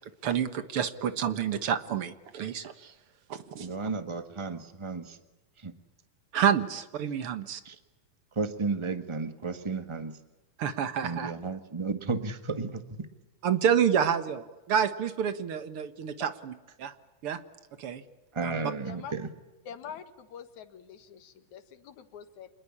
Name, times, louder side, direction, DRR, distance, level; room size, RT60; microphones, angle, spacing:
voice 1, 0.2-2.9 3.3-3.7 6.3-7.6 10.6-11.3 13.4-16.5 16.8-16.9 17.2-17.4 17.8-18.0 18.4-18.7, right 8 dB, 55° right, 11 dB, 1.9 m, -28 dB
voice 2, 3.6-5.2 5.6-5.7 7.6-7.8 8.3-10.2 11.0-13.1 18.3-19.3, right 4 dB, 30° right, 9 dB, 0.5 m, -33 dB
voice 3, 19.7-22.5, left 7 dB, 70° left, 10 dB, 3.0 m, -45 dB
27.5 x 21.0 x 8.7 m, 1.1 s
omnidirectional pair, 3.6 m